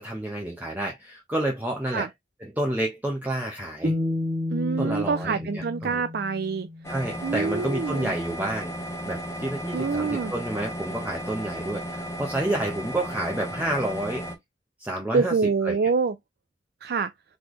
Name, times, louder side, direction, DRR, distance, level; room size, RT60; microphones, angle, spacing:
voice 1, 0.0-2.1 2.4-3.9 4.8-6.0 6.9-8.7 9.0-14.2 14.8-15.4 15.6-15.8, right 1 dB, 10° right, 0.9 m, -29 dB
sound 1, 3.8-7.0, left 1 dB, 40° right, 1.4 m, -30 dB
voice 2, 4.5-6.7 7.2-8.1 9.7-10.3 15.1-16.1 16.8-17.1, right 5 dB, 60° right, 0.4 m, -26 dB
sound 2, 6.8-14.4, equal, 15° left, 1.1 m, -34 dB
4.0 x 3.4 x 3.1 m
head